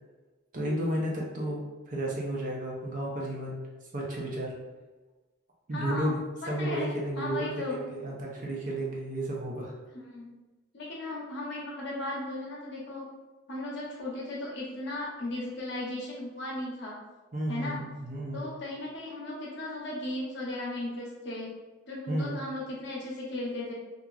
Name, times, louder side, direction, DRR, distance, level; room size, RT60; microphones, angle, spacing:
voice 1, 0.5-3.6 3.9-4.5 5.7-6.2 6.5-9.7 17.3-18.5 22.1-22.3, right 1 dB, 40° right, -3 dB, 0.5 m, -32 dB
voice 2, 5.7-6.1 6.4-7.9 9.9-10.3 10.7-13.0 13.5-17.0 17.5-17.8 18.3-21.5 21.9-23.7, left 1 dB, 55° left, -4 dB, 0.8 m, -36 dB
2.8 x 2.5 x 2.3 m, 1.2 s
head